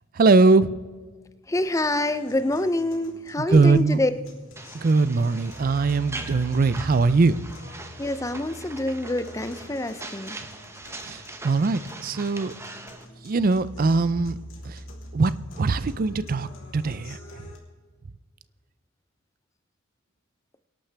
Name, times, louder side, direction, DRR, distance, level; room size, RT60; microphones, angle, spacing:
voice 1, 0.2-0.7 3.4-4.0 4.7-7.4 11.1-12.5 13.2-14.4 14.6-14.8 15.1-15.3 15.6-16.5 16.7-17.2, right 3 dB, 45° right, 16 dB, 0.4 m, -21 dB
voice 2, 1.5-4.1 8.0-10.4, left 1 dB, 15° left, 12 dB, 0.5 m, -26 dB
sound 1, 1.6-17.6, left 1 dB, 75° left, 3.3 m, -44 dB
sound 2, 4.6-13.0, right 2 dB, 15° right, 0.9 m, -41 dB
24.5 x 11.5 x 3.4 m, 1.4 s
head